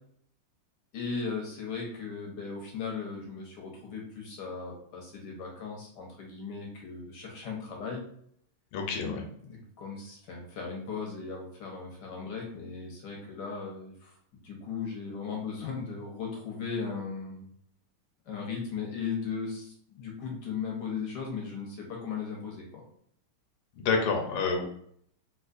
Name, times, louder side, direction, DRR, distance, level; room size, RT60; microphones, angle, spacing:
voice 1, 0.9-8.0 9.0-14.2 14.4-17.5 18.3-22.8, left 5 dB, 65° left, 0 dB, 1.1 m, -37 dB
voice 2, 8.7-9.2 23.8-24.6, left 4 dB, 85° left, 3 dB, 1.5 m, -28 dB
3.6 x 2.9 x 2.4 m, 0.66 s
omnidirectional pair, 2.4 m